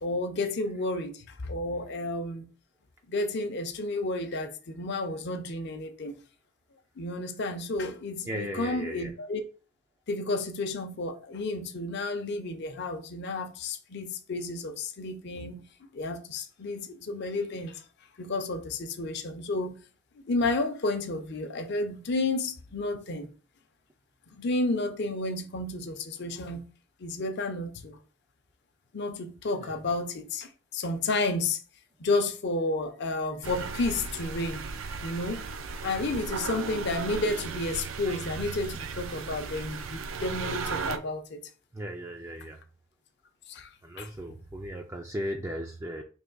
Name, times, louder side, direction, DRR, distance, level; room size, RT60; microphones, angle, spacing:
voice 1, 0.0-2.5 3.1-6.2 7.0-9.4 10.1-15.6 15.9-17.8 18.2-19.8 20.2-23.3 24.3-26.6 27.0-28.0 28.9-31.6 32.0-34.7 35.0-35.5 35.8-41.4 43.5-43.7 44.0-44.1, left 2 dB, 55° left, 0.6 m, -31 dB
voice 2, 8.2-9.1 29.5-29.7 41.7-42.6 43.8-46.0, equal, 15° right, 0.3 m, -36 dB
sound 1, 33.4-41.0, right 4 dB, 75° right, 0.5 m, -36 dB
3.4 x 2.9 x 3.9 m
head